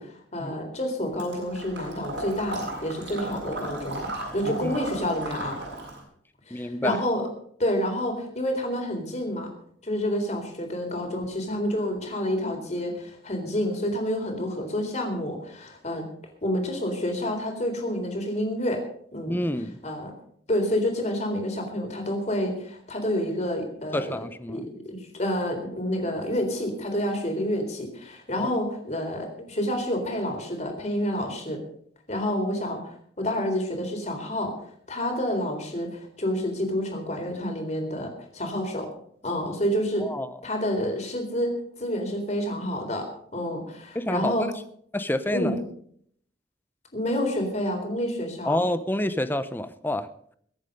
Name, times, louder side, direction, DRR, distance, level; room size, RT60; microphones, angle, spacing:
voice 1, 0.0-5.6 6.5-7.2 7.6-9.5 9.8-16.0 16.4-18.8 19.1-19.4 19.8-20.1 20.5-24.2 24.5-31.6 32.1-32.8 33.2-34.5 34.9-38.9 39.2-40.1 40.4-43.1 43.3-44.5 45.3-45.6 46.9-48.6, equal, 40° left, 3 dB, 3.9 m, -28 dB
Water / Liquid, 1.2-6.0, right 1 dB, 85° right, 7.7 m, -35 dB
voice 2, 4.5-4.8 6.5-7.0 19.3-19.8 23.9-24.6 28.4-28.5 40.0-40.4 43.9-44.3 44.9-45.5 48.4-50.1, left 1 dB, 10° left, 12 dB, 0.8 m, -28 dB
22.5 x 8.2 x 5.3 m, 0.64 s
head